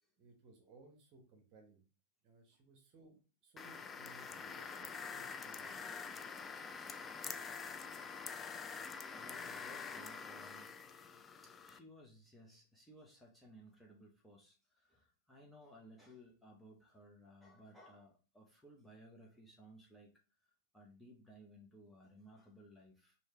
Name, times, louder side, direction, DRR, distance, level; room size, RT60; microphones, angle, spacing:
voice 1, 0.2-1.8 2.2-5.7, right 3 dB, 40° right, 3 dB, 1.1 m, -62 dB
sound 1, 3.6-11.8, left 5 dB, 20° left, 0.3 m, -46 dB
voice 2, 8.7-10.7 11.4-23.2, equal, 5° left, -2 dB, 0.8 m, -60 dB
3.2 x 2.7 x 3.2 m, 0.36 s
figure-of-eight pair, 95°, 0 cm